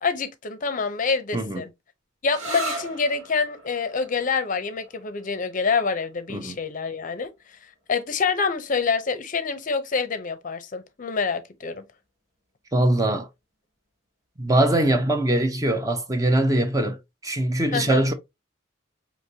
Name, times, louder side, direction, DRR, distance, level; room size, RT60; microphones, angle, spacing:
voice 1, 0.0-1.7 2.2-7.3 7.9-11.8 17.7-18.1, left 5 dB, 40° left, 0.6 m, -26 dB
sound 1, 2.3-9.7, right 2 dB, 85° right, 1.8 m, -40 dB
voice 2, 12.7-13.3 14.4-17.0 17.2-18.1, right 1 dB, 20° right, 0.6 m, -22 dB
5.0 x 2.9 x 2.7 m
head